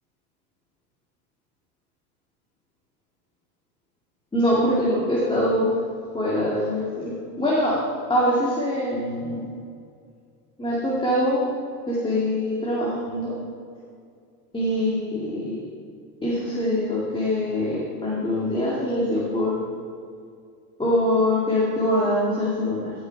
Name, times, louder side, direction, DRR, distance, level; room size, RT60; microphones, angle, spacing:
voice 1, 4.3-5.7 6.1-7.8 8.1-9.4 10.6-11.5 11.9-13.3 14.5-15.6 16.2-19.6 20.8-22.9, left 1 dB, 10° left, -6 dB, 2.3 m, -23 dB
14.5 x 6.3 x 4.6 m, 2.3 s
supercardioid pair, 95°, 44 cm